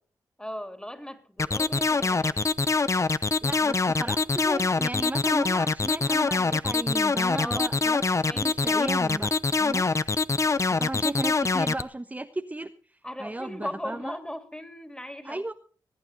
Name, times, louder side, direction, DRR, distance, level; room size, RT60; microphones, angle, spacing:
voice 1, 0.4-2.5 7.4-7.7 8.1-8.6 13.0-15.4, left 1 dB, 10° left, 7 dB, 3.0 m, -38 dB
sound 1, 1.4-11.8, left 4 dB, 35° left, 0.8 m, -24 dB
voice 2, 3.4-8.0 8.3-9.3 9.6-9.9 10.7-12.7 13.2-14.2 15.2-15.5, right 2 dB, 20° right, 5 dB, 1.1 m, -34 dB
21.0 x 9.1 x 5.4 m, 0.42 s
cardioid pair, 50°, 8 cm